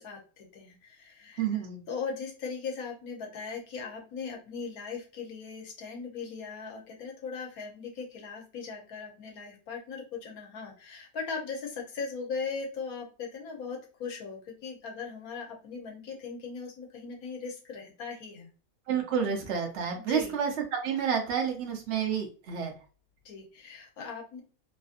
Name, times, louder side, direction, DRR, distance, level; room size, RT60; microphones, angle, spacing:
voice 1, 0.0-18.5 19.9-20.3 23.2-24.4, left 5 dB, 80° left, 0 dB, 1.4 m, -39 dB
voice 2, 1.4-1.8 18.9-22.7, right 7 dB, 60° right, 1 dB, 0.8 m, -29 dB
3.2 x 2.6 x 2.4 m, 0.36 s
omnidirectional pair, 1.5 m